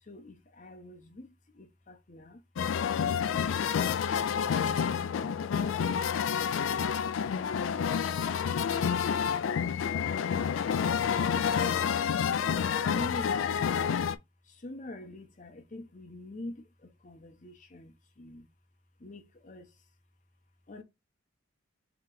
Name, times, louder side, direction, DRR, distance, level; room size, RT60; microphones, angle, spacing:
voice 1, 0.0-2.4 11.7-12.3 12.9-13.5 14.4-18.5 19.0-19.7 20.7-20.8, left 1 dB, 40° left, 0.7 m, -47 dB
sound 1, 2.6-14.2, left 7 dB, 85° left, 0.3 m, -29 dB
3.2 x 2.9 x 3.8 m
head